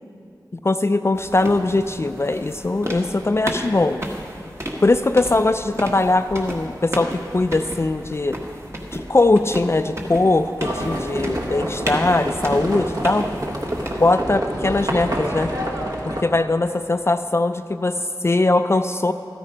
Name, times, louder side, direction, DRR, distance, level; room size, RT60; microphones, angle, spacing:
voice 1, 0.5-4.0 4.8-8.4 8.9-13.3 14.0-15.5 16.1-19.1, left 2 dB, 35° left, 9 dB, 0.3 m, -20 dB
sound 1, 1.1-14.3, equal, 35° right, 1.5 m, -33 dB
Livestock farm animals working animals, 10.6-16.2, equal, 55° right, 1.2 m, -27 dB
13.0 x 9.8 x 5.1 m, 2.5 s
wide cardioid pair, 55°, 8 cm